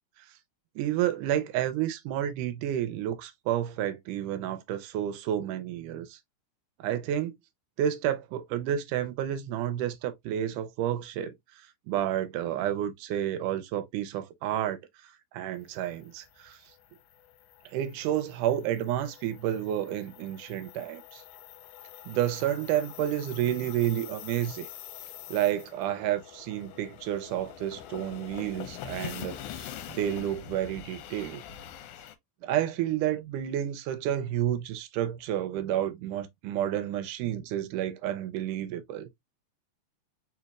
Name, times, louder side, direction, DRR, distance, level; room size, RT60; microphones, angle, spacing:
voice 1, 0.8-6.2 6.8-7.3 7.8-11.4 11.9-14.8 15.3-16.6 17.7-21.2 22.1-24.7 25.3-31.4 32.4-39.1, right 11 dB, 80° right, 2.1 m, -30 dB
sound 1, 15.7-32.2, left 10 dB, 80° left, 2.0 m, -45 dB
4.5 x 4.1 x 2.2 m
omnidirectional pair, 3.8 m